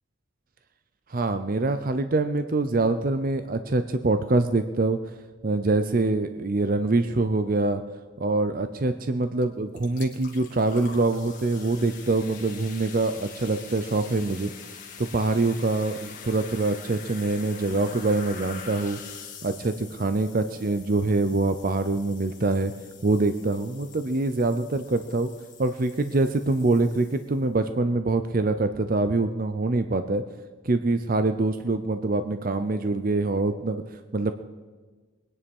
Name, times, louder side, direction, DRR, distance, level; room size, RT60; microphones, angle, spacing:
voice 1, 1.1-5.0 5.4-7.8 8.2-14.5 15.0-19.0 19.4-22.7 23.0-25.3 25.6-30.2 30.6-34.3, right 2 dB, 45° right, 9 dB, 0.6 m, -25 dB
sound 1, 9.4-9.5 9.7-27.5, left 6 dB, 40° left, 2.2 m, -45 dB
21.0 x 10.0 x 5.4 m, 1.4 s
head